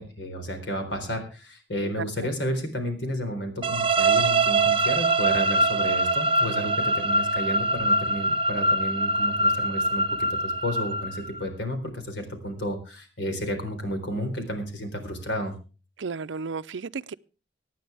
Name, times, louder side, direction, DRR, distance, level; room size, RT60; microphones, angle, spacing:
voice 1, 0.0-15.5, equal, 75° left, 4.0 m, -32 dB
voice 2, 1.8-2.3 16.0-17.1, right 5 dB, 85° right, 0.5 m, -34 dB
sound 1, 3.6-11.4, right 2 dB, 30° right, 0.6 m, -23 dB
24.0 x 9.2 x 3.4 m
head